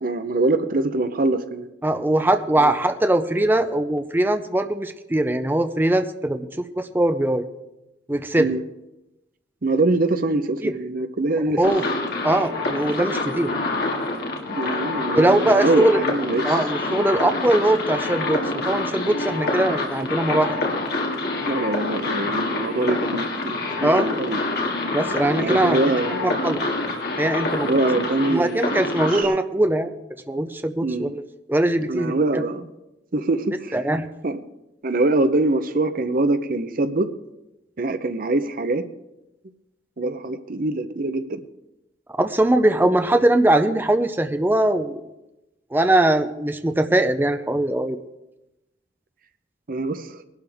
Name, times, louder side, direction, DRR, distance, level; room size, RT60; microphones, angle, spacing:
voice 1, 0.0-1.7 2.6-2.7 8.4-8.6 9.6-11.6 14.6-16.4 21.5-24.4 25.4-26.4 27.7-29.3 30.8-31.1 31.9-32.7 33.1-33.8 34.2-34.4 34.8-37.1 37.8-38.9 40.0-41.4 49.7-50.2, right 2 dB, 50° right, 10 dB, 0.8 m, -24 dB
voice 2, 1.8-7.5 8.1-8.5 10.6-10.7 11.4-11.8 12.2-13.5 15.1-16.0 16.4-20.6 23.8-24.1 24.9-25.8 26.1-26.6 27.2-27.7 28.3-29.9 30.3-31.2 31.5-32.4 33.7-34.1 42.1-45.0 45.7-48.0, right 1 dB, 10° right, 8 dB, 0.5 m, -21 dB
sound 1, 11.6-29.2, left 2 dB, 60° left, 2.3 m, -26 dB
20.5 x 12.0 x 3.5 m, 0.95 s
head